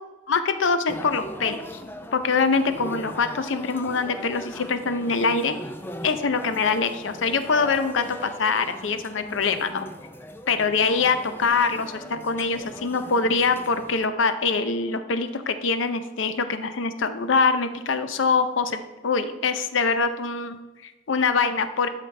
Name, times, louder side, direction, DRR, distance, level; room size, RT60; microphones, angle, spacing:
voice 1, 0.3-1.6 2.1-5.5 6.0-9.9 10.5-21.9, left 4 dB, 75° left, 10 dB, 0.6 m, -24 dB
sound 1, 0.9-14.1, left 1 dB, 10° left, 0.3 m, -39 dB
12.0 x 5.0 x 3.3 m, 1.2 s
head